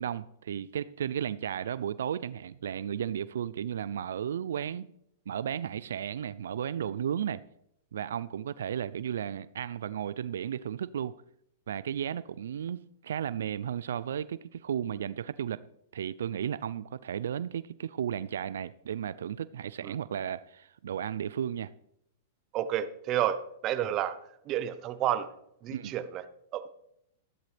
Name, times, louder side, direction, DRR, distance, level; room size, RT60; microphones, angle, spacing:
voice 1, 0.0-4.9 5.3-7.4 7.9-11.1 11.7-15.6 15.9-21.7 25.7-26.0, right 9 dB, 85° right, 0.4 m, -34 dB
voice 2, 22.5-24.2 24.5-25.3 25.6-26.2 26.5-26.7, right 11 dB, 35° right, 0.9 m, -30 dB
13.5 x 11.5 x 3.4 m
hypercardioid pair, 140°, 0 cm